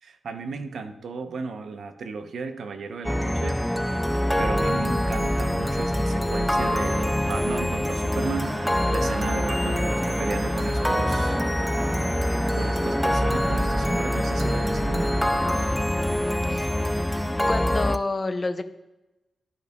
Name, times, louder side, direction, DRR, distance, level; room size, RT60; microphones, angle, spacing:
voice 1, 0.0-3.6 4.4-8.6 8.9-11.4 12.6-15.1, right 4 dB, 75° right, 8 dB, 0.7 m, -34 dB
sound 1, 3.0-18.0, left 1 dB, 5° left, 0.4 m, -25 dB
sound 2, 8.2-15.7, right 2 dB, 45° right, 1.2 m, -37 dB
voice 2, 17.5-18.6, left 3 dB, 35° left, 9 dB, 0.7 m, -28 dB
13.0 x 5.4 x 2.3 m, 0.96 s
cardioid pair, 55°, 0 cm